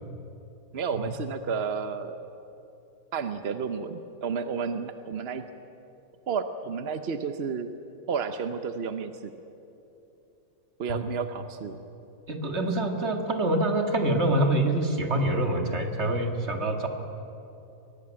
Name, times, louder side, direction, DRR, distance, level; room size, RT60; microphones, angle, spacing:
voice 1, 0.7-2.1 3.1-5.4 6.3-7.7 8.1-9.3 10.8-11.8, right 5 dB, 55° right, 9 dB, 0.7 m, -31 dB
voice 2, 12.3-16.9, right 1 dB, 35° right, 4 dB, 2.1 m, -26 dB
23.0 x 18.0 x 8.9 m, 2.9 s
omnidirectional pair, 2.1 m